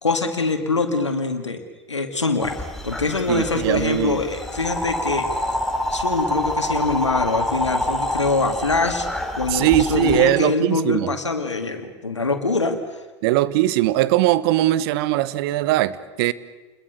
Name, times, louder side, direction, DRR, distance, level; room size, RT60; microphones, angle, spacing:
voice 1, 0.0-1.6 1.9-5.4 5.9-9.1 9.4-12.8, left 3 dB, 90° left, 2.3 m, -24 dB
sound 1, 2.4-10.3, left 1 dB, ahead, 3.8 m, -27 dB
voice 2, 3.3-4.2 9.5-11.1 13.2-16.3, right 15 dB, 60° right, 1.1 m, -20 dB
29.5 x 21.5 x 6.9 m
figure-of-eight pair, 80°, 15 cm